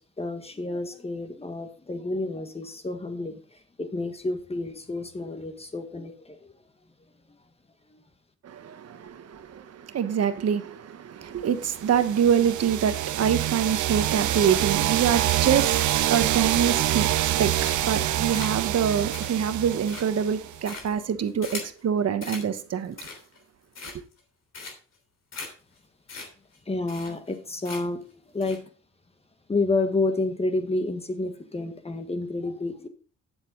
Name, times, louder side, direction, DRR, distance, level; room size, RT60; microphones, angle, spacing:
voice 1, 0.0-6.5 7.3-7.4 7.9-8.0 26.6-28.7 29.5-32.9, left 2 dB, 20° left, 1.6 m, -30 dB
voice 2, 8.4-23.0 23.9-24.0, right 8 dB, 55° right, 1.2 m, -25 dB
sound 1, 11.9-20.6, right 13 dB, 75° right, 0.8 m, -26 dB
sound 2, 16.8-17.2 17.6-18.0 18.3-21.8 22.2-22.5 22.8-23.4 23.7-24.2 24.5-25.0 25.3-25.5 25.8-25.9 26.1-26.3 26.5-26.6 26.9-27.4 27.6-28.0 28.4-28.6, left 4 dB, 60° left, 3.2 m, -40 dB
9.4 x 7.6 x 3.9 m
cardioid pair, 90°, 30 cm